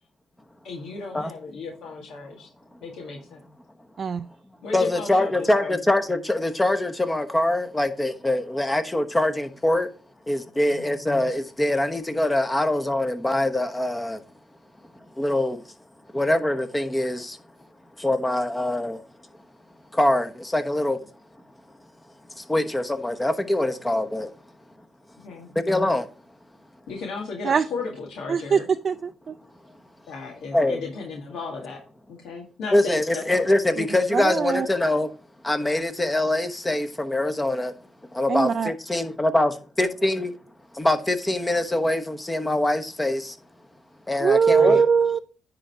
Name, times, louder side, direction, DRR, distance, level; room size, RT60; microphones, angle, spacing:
voice 1, 0.6-2.5 2.8-3.4 4.6-5.8 10.6-11.0 25.2-25.5 26.9-28.7 30.1-31.8 32.1-33.5 44.5-44.8, left 4 dB, 75° left, 1.8 m, -35 dB
voice 2, 4.7-9.9 10.3-14.2 15.2-15.6 16.1-17.4 18.0-19.0 19.9-21.0 22.4-24.3 25.5-26.1 30.5-30.8 32.7-35.1 35.4-37.7 38.1-39.5 39.8-40.3 40.7-43.4 44.1-44.8, left 1 dB, 15° left, 1.0 m, -23 dB
voice 3, 28.3-28.6 28.8-29.3 33.8-33.9 34.1-34.7 38.3-38.7 44.2-45.2, right 6 dB, 45° right, 0.4 m, -21 dB
9.8 x 3.9 x 4.6 m
cardioid pair, 90°, 0 cm